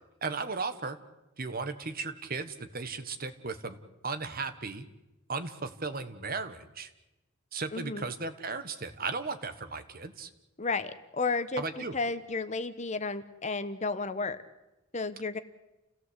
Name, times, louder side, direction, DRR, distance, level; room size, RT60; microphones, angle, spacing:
voice 1, 0.2-1.0 1.4-3.8 4.0-4.8 5.3-6.9 7.5-10.3 11.6-11.9, right 4 dB, 45° right, 10 dB, 1.5 m, -36 dB
voice 2, 7.7-8.1 10.6-14.4 14.9-15.4, left 3 dB, 35° left, 12 dB, 1.1 m, -33 dB
29.0 x 17.0 x 8.2 m, 1.0 s
head